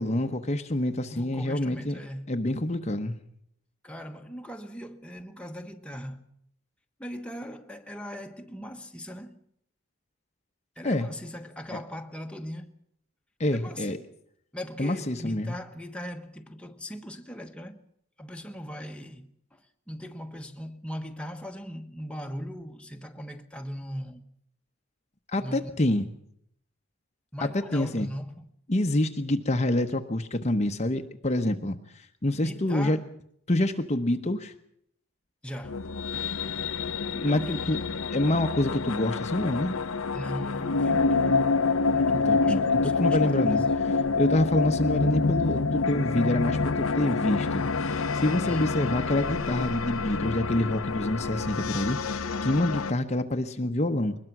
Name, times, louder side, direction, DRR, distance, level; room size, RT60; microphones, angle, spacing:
voice 1, 0.0-2.0 2.3-3.2 10.8-11.1 13.4-14.0 14.8-15.6 25.3-26.1 27.7-28.1 28.7-33.0 33.5-34.5 37.1-37.8 38.1-39.8 42.1-43.6 44.2-54.2, left 1 dB, 35° left, 1.0 m, -27 dB
voice 2, 1.1-2.3 3.8-6.2 7.0-9.4 10.8-12.7 13.5-14.1 14.5-17.8 18.2-24.2 25.4-26.0 27.3-28.5 32.4-33.1 35.4-35.8 37.2-37.7 40.1-41.6 41.9-43.8 48.5-48.7, equal, 5° left, 1.3 m, -39 dB
sound 1, 35.6-52.9, left 4 dB, 80° left, 0.9 m, -27 dB
22.0 x 20.5 x 6.0 m
head